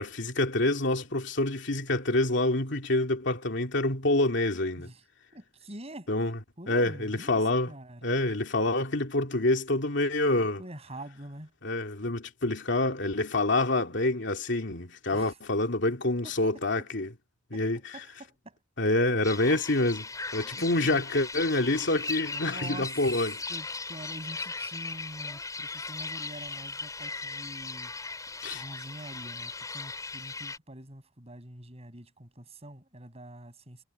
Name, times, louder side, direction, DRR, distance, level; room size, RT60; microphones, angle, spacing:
voice 1, 0.0-4.9 6.1-6.3 6.7-7.7 8.0-10.6 11.6-17.1 17.5-17.8 18.8-23.4 28.4-28.6, left 2 dB, 60° left, 2.8 m, -27 dB
voice 2, 5.3-6.1 6.6-7.4 7.7-8.2 10.6-11.5 15.1-15.4 16.2-16.3 16.8-16.9 17.5-18.6 20.5-21.0 22.4-23.0 23.5-27.9 28.5-33.8, right 1 dB, 30° right, 6.5 m, -45 dB
sound 1, 19.2-30.6, left 3 dB, 15° left, 6.9 m, -38 dB
head